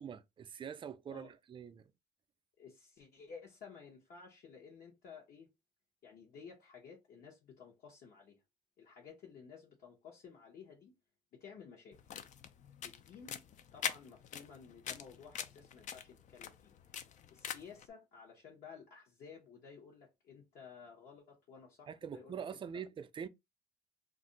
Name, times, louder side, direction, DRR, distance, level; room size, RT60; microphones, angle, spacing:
voice 1, 0.0-1.9 21.9-23.3, right 7 dB, 30° right, 0.4 m, -44 dB
voice 2, 2.6-5.5 6.0-8.4 8.8-10.9 11.3-12.0 12.8-13.4 13.7-16.7 17.3-22.4 22.7-22.8, left 6 dB, 60° left, 0.9 m, -54 dB
sound 1, 11.9-17.9, left 8 dB, 45° left, 0.4 m, -44 dB
2.5 x 2.1 x 3.8 m
cardioid pair, 110°, 17 cm